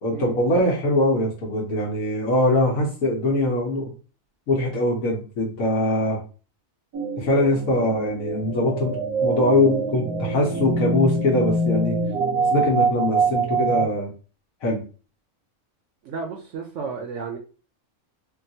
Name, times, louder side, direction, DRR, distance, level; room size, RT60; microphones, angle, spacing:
voice 1, 0.0-3.9 4.5-6.2 7.2-12.0 12.5-14.1 14.6-14.8, left 1 dB, 75° left, 1.2 m, -22 dB
sound 1, 6.9-13.9, right 3 dB, 85° right, 1.2 m, -25 dB
voice 2, 16.0-17.4, right 5 dB, 70° right, 0.8 m, -32 dB
3.7 x 2.3 x 2.7 m
omnidirectional pair, 1.5 m